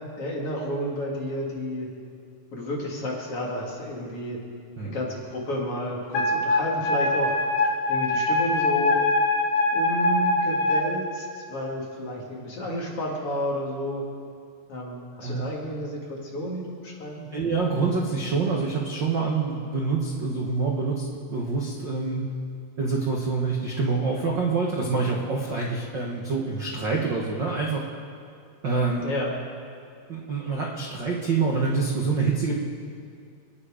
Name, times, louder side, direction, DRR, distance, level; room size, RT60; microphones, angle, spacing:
voice 1, 0.2-1.9 2.5-4.4 4.8-7.3 7.9-9.0 9.7-14.0 14.7-17.5 29.0-29.3, equal, 40° left, -3 dB, 2.8 m, -31 dB
Wind instrument woodwind instrument, 6.1-10.9, left 2 dB, 70° left, 2.9 m, -23 dB
voice 2, 15.2-15.5 17.3-22.2 22.8-27.8 28.6-29.1 30.1-32.5, right 4 dB, 80° right, -2 dB, 1.0 m, -26 dB
28.0 x 10.0 x 5.1 m, 2.3 s
omnidirectional pair, 4.4 m